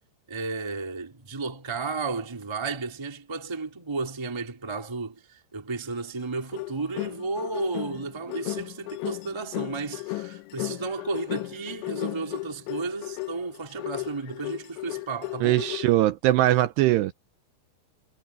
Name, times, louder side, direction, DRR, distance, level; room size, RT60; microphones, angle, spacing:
voice 1, 0.3-15.6, right 4 dB, 15° right, 0.9 m, -33 dB
sound 1, 6.2-16.0, left 23 dB, 80° left, 3.0 m, -35 dB
voice 2, 15.4-17.1, right 15 dB, 80° right, 2.5 m, -21 dB
omnidirectional pair, 5.5 m